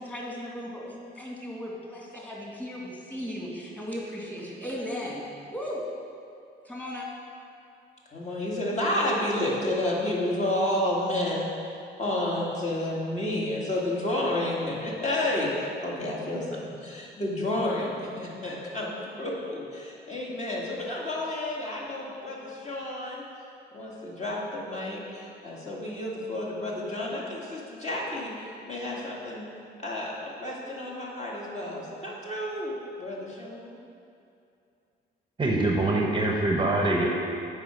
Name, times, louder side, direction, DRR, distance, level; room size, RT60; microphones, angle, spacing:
voice 1, 0.0-5.8 6.6-7.1, equal, 5° left, -4 dB, 2.0 m, -36 dB
voice 2, 8.1-11.6 12.0-15.5 15.8-23.2 23.7-29.5 29.8-30.1 30.4-33.8, left 1 dB, 35° left, -4 dB, 2.0 m, -30 dB
voice 3, 35.4-37.1, right 2 dB, 25° right, 0 dB, 0.8 m, -24 dB
7.7 x 5.0 x 6.2 m, 2.5 s
cardioid pair, 90°, 20 cm